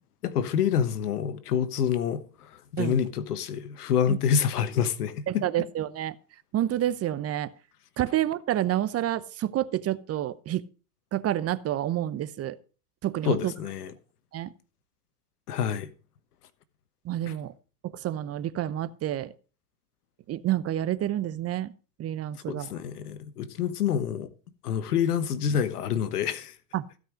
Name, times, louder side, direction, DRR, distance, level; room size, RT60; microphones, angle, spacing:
voice 1, 0.2-5.4 13.2-13.9 15.5-15.9 17.3-17.4 22.5-24.3 24.6-26.5, left 8 dB, 90° left, 1.2 m, -27 dB
voice 2, 5.3-6.1 6.5-7.5 8.0-10.6 11.1-12.6 13.0-13.5 14.3-14.5 17.0-17.5 17.8-19.3 20.3-21.7 22.0-22.7 26.7-26.8, right 12 dB, 35° right, 0.8 m, -29 dB
16.0 x 5.5 x 6.3 m
hypercardioid pair, 105°, 44 cm